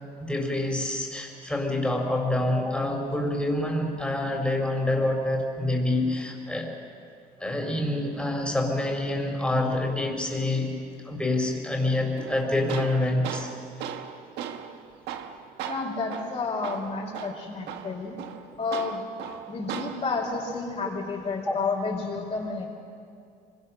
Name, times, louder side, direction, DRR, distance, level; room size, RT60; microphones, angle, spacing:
voice 1, 0.2-6.7 7.4-10.7 11.0-13.5 21.5-21.6, left 1 dB, 5° left, 2 dB, 4.5 m, -27 dB
Tools, 12.2-20.2, right 8 dB, 80° right, 1.4 m, -38 dB
voice 2, 15.7-18.2 18.6-19.1 19.5-22.7, left 4 dB, 40° left, -3 dB, 5.3 m, -30 dB
25.5 x 23.0 x 6.4 m, 2.3 s
cardioid pair, 110°, 17 cm